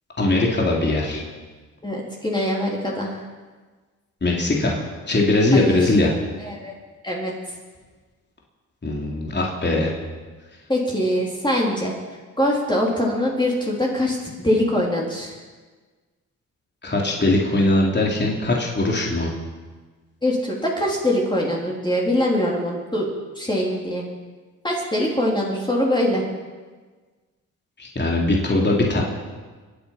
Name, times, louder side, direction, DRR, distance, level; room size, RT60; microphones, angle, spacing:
voice 1, 0.2-1.2 4.2-4.8 5.1-6.1 8.8-9.9 16.8-19.3 27.8-29.0, left 2 dB, 30° left, -2 dB, 3.6 m, -20 dB
voice 2, 1.8-3.2 5.5-5.9 6.4-6.7 7.0-7.3 10.7-11.9 12.4-15.3 20.2-23.1 23.4-24.1 24.6-26.2, left 1 dB, 15° left, -3 dB, 3.6 m, -23 dB
25.0 x 9.0 x 5.8 m, 1.4 s
cardioid pair, 65°, 34 cm